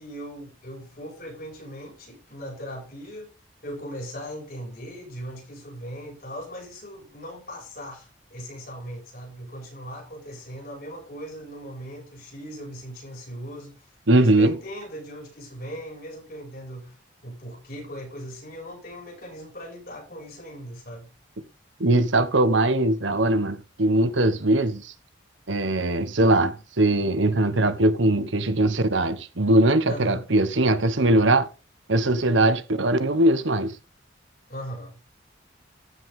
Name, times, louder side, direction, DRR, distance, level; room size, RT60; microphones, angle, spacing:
voice 1, 0.0-3.3 3.6-17.0 17.2-21.1 29.9-30.2 34.5-35.0, equal, 50° left, 6.1 m, -39 dB
voice 2, 14.1-14.6 21.8-24.9 25.5-31.5 31.9-33.7, right 1 dB, 85° right, 1.3 m, -21 dB
14.5 x 6.1 x 3.7 m
head